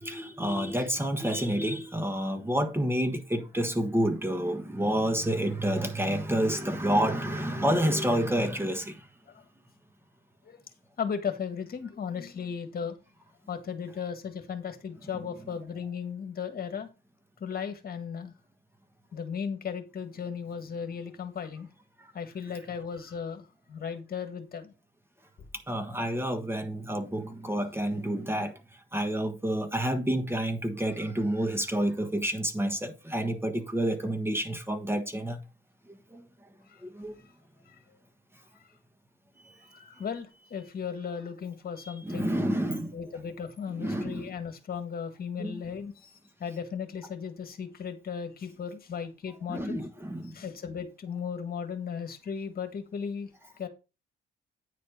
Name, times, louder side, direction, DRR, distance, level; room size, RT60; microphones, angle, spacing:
voice 1, 0.0-9.0 25.7-28.6 28.9-35.4 36.1-36.2 36.9-37.1 42.0-43.0 43.8-44.3 45.4-45.6 49.5-50.3, right 1 dB, 10° right, 1.4 m, -29 dB
voice 2, 11.0-13.0 13.5-16.9 17.4-18.3 19.1-21.7 22.1-24.7 36.7-36.8 39.7-42.3 42.9-46.1 46.4-49.8 50.3-53.3 53.6-53.7, left 7 dB, 50° left, 1.7 m, -36 dB
9.6 x 4.2 x 5.2 m
cardioid pair, 90°, 20 cm